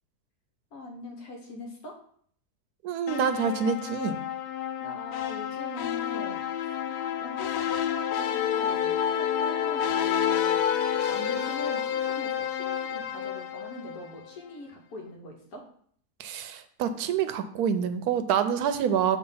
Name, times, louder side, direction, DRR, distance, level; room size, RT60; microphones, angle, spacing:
voice 1, 0.7-2.0 4.8-10.6 11.1-15.6, left 2 dB, 65° left, 1 dB, 1.3 m, -42 dB
voice 2, 2.8-4.2 16.2-19.2, right 7 dB, 75° right, 10 dB, 1.1 m, -27 dB
sound 1, 3.1-14.3, left 9 dB, 90° left, 1.2 m, -29 dB
7.2 x 2.7 x 5.4 m, 0.63 s
omnidirectional pair, 1.7 m